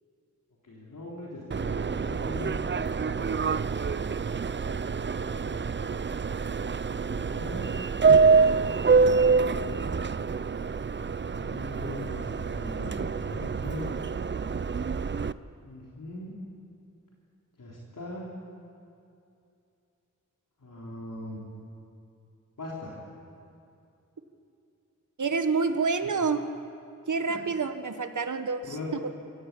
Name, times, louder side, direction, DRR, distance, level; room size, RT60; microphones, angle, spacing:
voice 1, 0.6-2.7 5.3-5.7 6.9-7.7 8.4-9.0 11.3-13.9 15.6-16.3 17.6-18.3 20.6-21.4 22.6-23.0 26.0-26.1 28.6-28.9, left 2 dB, 80° left, -5 dB, 4.0 m, -40 dB
Subway metro underground, 1.5-15.3, right 5 dB, 35° right, 0.5 m, -26 dB
voice 2, 25.2-26.4 27.1-29.1, right 4 dB, 70° right, 8 dB, 1.4 m, -28 dB
25.5 x 14.5 x 8.5 m, 2.6 s
wide cardioid pair, 70°, 31 cm